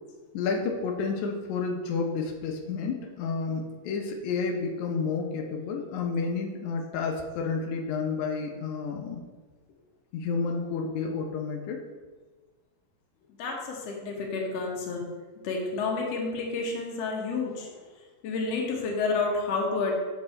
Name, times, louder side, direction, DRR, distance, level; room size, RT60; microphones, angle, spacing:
voice 1, 0.3-9.2 10.1-11.8, left 4 dB, 85° left, 2 dB, 2.2 m, -30 dB
voice 2, 13.4-15.1 15.4-17.7 18.2-19.9, left 4 dB, 65° left, -1 dB, 2.1 m, -30 dB
6.8 x 5.3 x 4.2 m, 1.3 s
omnidirectional pair, 3.3 m